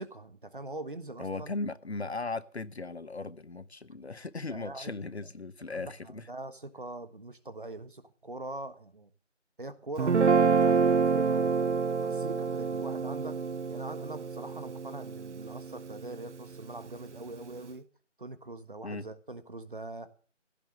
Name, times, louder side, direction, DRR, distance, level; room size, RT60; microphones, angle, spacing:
voice 1, 0.0-1.5 4.5-5.0 5.7-9.1 9.6-11.6 12.0-13.4 13.7-17.8 18.2-20.1, right 2 dB, 45° right, 1.4 m, -42 dB
voice 2, 1.2-6.3 18.8-19.1, left 3 dB, 60° left, 0.9 m, -37 dB
Guitar, 10.0-16.3, right 5 dB, 70° right, 0.6 m, -27 dB
15.5 x 7.2 x 8.1 m
figure-of-eight pair, 170°, 37 cm